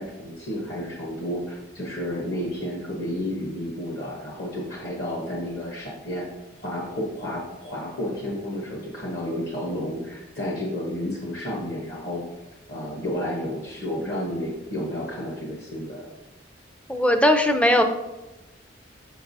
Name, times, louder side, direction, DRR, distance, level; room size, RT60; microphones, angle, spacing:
voice 1, 0.0-6.3 6.6-12.2 12.7-16.1, left 1 dB, 60° left, -2 dB, 1.0 m, -31 dB
voice 2, 16.9-17.8, left 1 dB, 5° left, 6 dB, 0.3 m, -18 dB
6.6 x 5.7 x 2.6 m, 1.0 s
head